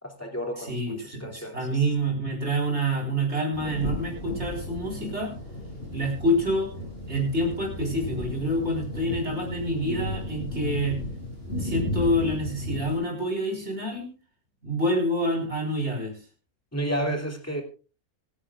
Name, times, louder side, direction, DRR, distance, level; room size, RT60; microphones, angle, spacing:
voice 1, 0.0-1.8 16.7-17.6, right 1 dB, 10° left, 1 dB, 2.5 m, -31 dB
voice 2, 0.6-5.3 5.9-6.7 7.1-11.0 11.5-14.1 14.6-16.1, equal, 45° right, 1 dB, 4.5 m, -27 dB
sound 1, 3.5-13.0, left 1 dB, 40° left, 5.1 m, -34 dB
26.0 x 10.0 x 2.4 m, 0.36 s
omnidirectional pair, 1.5 m